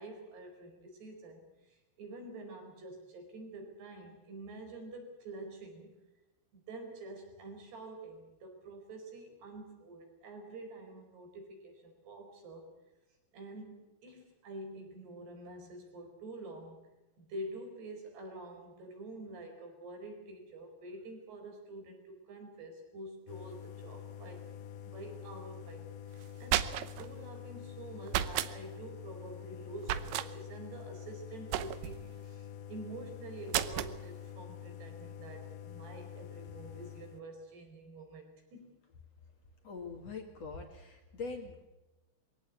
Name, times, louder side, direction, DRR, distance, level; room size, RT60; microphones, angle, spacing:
voice 1, 0.0-5.9 6.5-12.7 13.3-16.9 17.2-24.5 24.8-38.8, right 2 dB, 65° right, 3 dB, 6.6 m, -47 dB
sound 1, 23.3-37.2, left 9 dB, 75° left, 2.6 m, -47 dB
sound 2, 26.2-27.1 28.1-28.5 29.8-30.3 31.5-32.0 33.5-34.0, right 12 dB, 85° right, 1.9 m, -32 dB
voice 2, 39.6-41.7, left 4 dB, 45° left, 3 dB, 2.5 m, -43 dB
23.0 x 17.0 x 8.4 m, 1.0 s
omnidirectional pair, 5.1 m